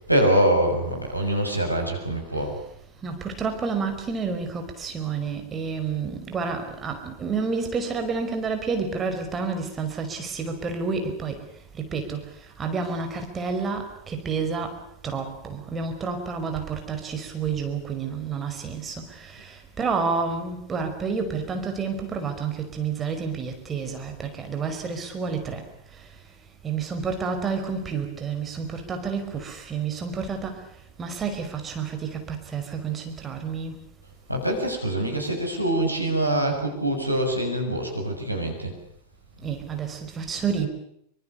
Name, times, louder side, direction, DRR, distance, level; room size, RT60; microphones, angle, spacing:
voice 1, 0.1-2.6 34.3-38.7, right 1 dB, 90° right, 6.7 m, -24 dB
voice 2, 2.3-2.6 3.0-26.3 26.6-33.8 39.4-40.7, right 5 dB, 20° right, 5.1 m, -30 dB
27.0 x 25.0 x 6.9 m
figure-of-eight pair, 90°, 0 cm